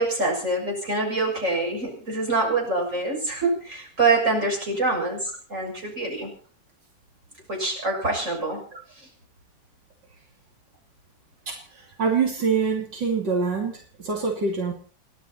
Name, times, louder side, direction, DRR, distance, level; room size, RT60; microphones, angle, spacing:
voice 1, 0.0-6.3 7.5-8.6, right 3 dB, 45° right, 0 dB, 7.3 m, -25 dB
voice 2, 12.0-13.8 14.0-14.7, right 5 dB, 90° right, 1 dB, 3.4 m, -24 dB
29.0 x 11.0 x 4.3 m, 0.40 s
omnidirectional pair, 1.9 m